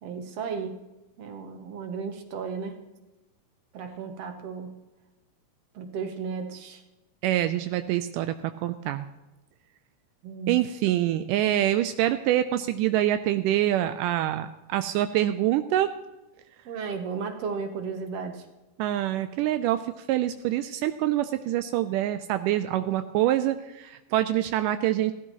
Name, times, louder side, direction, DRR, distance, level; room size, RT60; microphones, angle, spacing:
voice 1, 0.0-0.8 1.2-2.8 3.7-4.7 5.7-6.8 10.2-10.6 16.7-18.4, right 5 dB, 65° right, 6 dB, 1.8 m, -34 dB
voice 2, 7.2-9.1 10.5-15.9 18.8-25.1, right 13 dB, 85° right, 10 dB, 2.1 m, -25 dB
15.5 x 13.0 x 3.0 m, 1.0 s
omnidirectional pair, 3.7 m